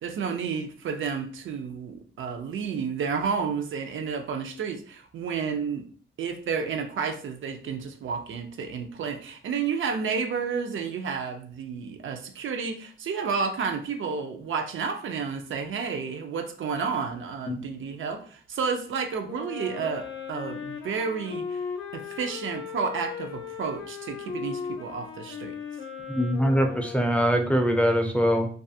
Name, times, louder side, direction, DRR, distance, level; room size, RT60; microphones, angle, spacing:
voice 1, 0.0-5.9 6.2-21.6 21.9-25.5, right 5 dB, 80° right, 0.5 m, -31 dB
Wind instrument woodwind instrument, 19.2-27.6, left 6 dB, 85° left, 0.5 m, -37 dB
voice 2, 26.1-28.5, equal, 5° left, 0.4 m, -23 dB
2.3 x 2.3 x 2.6 m
wide cardioid pair, 100°, 20 cm